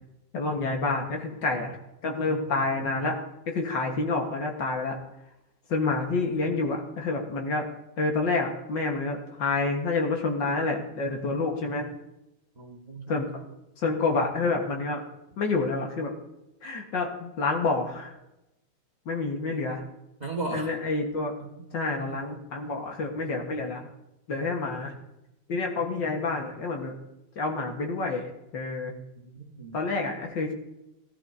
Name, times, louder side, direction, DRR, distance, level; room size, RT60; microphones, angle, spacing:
voice 1, 0.3-1.8 2.0-3.2 3.5-5.0 5.7-7.7 8.0-11.9 13.1-13.3 13.8-15.0 15.4-16.1 16.6-18.2 19.1-19.8 20.5-21.3 21.7-23.9 24.3-25.0 25.5-26.9 27.4-28.9 29.7-30.5, left 3 dB, 65° left, 2 dB, 2.2 m, -28 dB
voice 2, 5.9-6.5 12.5-13.4 20.2-20.7 21.4-21.5 29.1-29.8, right 3 dB, 20° right, -2 dB, 1.6 m, -37 dB
18.0 x 12.0 x 2.8 m, 0.90 s
omnidirectional pair, 2.2 m